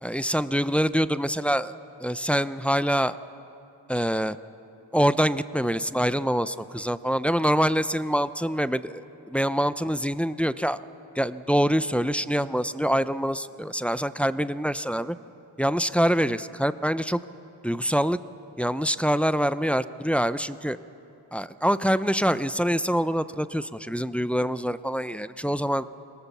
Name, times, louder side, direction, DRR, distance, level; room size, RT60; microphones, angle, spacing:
voice 1, 0.0-1.7 2.0-3.2 3.9-4.4 4.9-10.8 11.2-15.2 15.6-17.2 17.6-18.2 18.6-20.8 21.3-25.9, equal, 5° left, 14 dB, 0.5 m, -25 dB
24.5 x 17.5 x 7.2 m, 2.9 s
wide cardioid pair, 50°, 43 cm